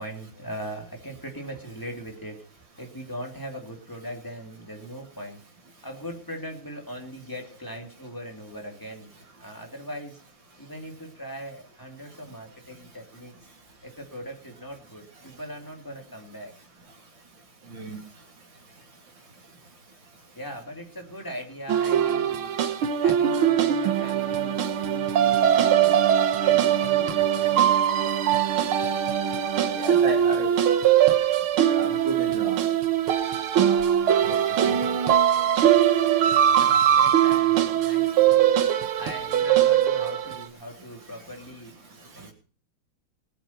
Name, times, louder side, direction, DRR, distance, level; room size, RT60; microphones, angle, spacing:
voice 1, 0.0-5.5 5.8-9.1 9.4-10.2 10.6-13.3 13.8-16.5 20.3-22.5 23.0-26.0 26.4-27.6 36.5-41.8 42.1-42.3, equal, 10° left, 2 dB, 2.8 m, -40 dB
voice 2, 17.7-18.0 29.7-30.5 31.8-32.6 34.2-34.8, right 2 dB, 65° right, 2 dB, 3.6 m, -33 dB
sound 1, 21.7-40.4, right 10 dB, 85° right, 1.9 m, -21 dB
20.0 x 7.9 x 5.8 m, 0.39 s
omnidirectional pair, 2.2 m